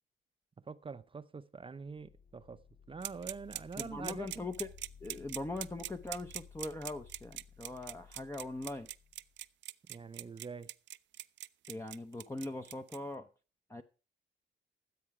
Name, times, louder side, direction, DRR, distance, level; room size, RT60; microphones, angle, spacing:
voice 1, 0.7-2.6 2.9-4.5 9.9-10.7, right 5 dB, 25° right, 0.7 m, -45 dB
sound 1, 1.8-9.4, left 6 dB, 80° left, 3.4 m, -57 dB
sound 2, 3.0-13.0, right 14 dB, 70° right, 0.5 m, -42 dB
voice 2, 3.8-4.7 5.0-8.9 11.7-13.3 13.7-13.8, left 2 dB, 10° left, 0.8 m, -41 dB
13.5 x 7.8 x 4.7 m
cardioid pair, 90°, 20 cm